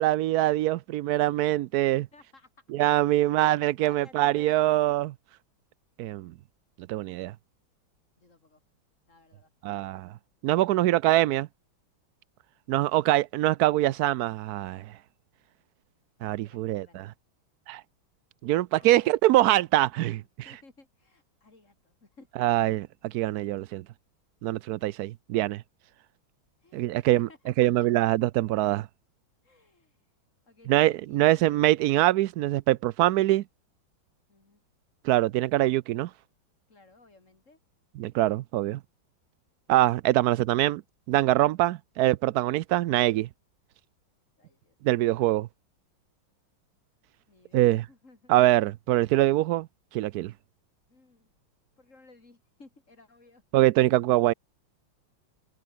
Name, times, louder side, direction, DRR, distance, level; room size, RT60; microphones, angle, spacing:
voice 1, 0.0-2.1 2.7-5.1 6.0-6.3 6.9-7.3 9.6-10.1 10.4-11.5 12.7-14.9 16.2-17.1 17.7-17.8 18.4-20.2 22.4-23.8 24.4-25.6 26.7-27.3 27.6-28.9 30.7-33.4 35.0-36.1 38.0-38.8 39.7-40.8 41.1-43.3 44.8-45.5 47.5-47.8 48.3-49.7 49.9-50.3 53.5-54.3, right 15 dB, 90° right, 0.8 m, -23 dB
voice 2, 2.1-4.8 8.2-8.6 9.1-9.5 16.4-17.2 18.8-19.3 20.4-22.6 24.8-25.0 26.6-27.9 29.4-30.1 30.5-31.8 34.3-34.6 36.7-37.6 44.4-44.8 47.3-48.3 50.9-51.3 51.8-53.4, left 3 dB, 35° left, 4.3 m, -57 dB
omnidirectional pair, 2.2 m